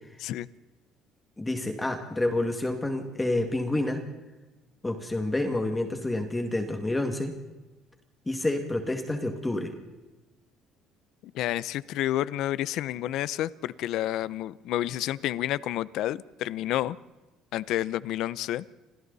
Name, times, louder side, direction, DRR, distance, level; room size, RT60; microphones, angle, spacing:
voice 1, 1.4-4.0 4.8-7.4 8.3-9.7, left 1 dB, 10° left, 5 dB, 2.2 m, -28 dB
voice 2, 11.3-17.0 17.5-18.7, left 13 dB, 70° left, 19 dB, 0.7 m, -30 dB
30.0 x 27.0 x 4.2 m, 1.1 s
cardioid pair, 140°, 0 cm